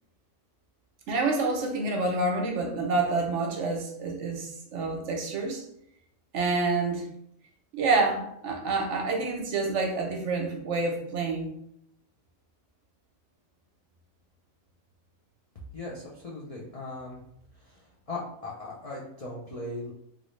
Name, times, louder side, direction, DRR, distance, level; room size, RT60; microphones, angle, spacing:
voice 1, 1.1-5.6 6.3-7.0 7.7-11.5, right 3 dB, 65° right, 1 dB, 0.9 m, -28 dB
voice 2, 15.7-17.2 17.6-19.9, left 2 dB, 50° left, -5 dB, 0.4 m, -38 dB
3.3 x 2.6 x 3.1 m, 0.74 s
omnidirectional pair, 1.4 m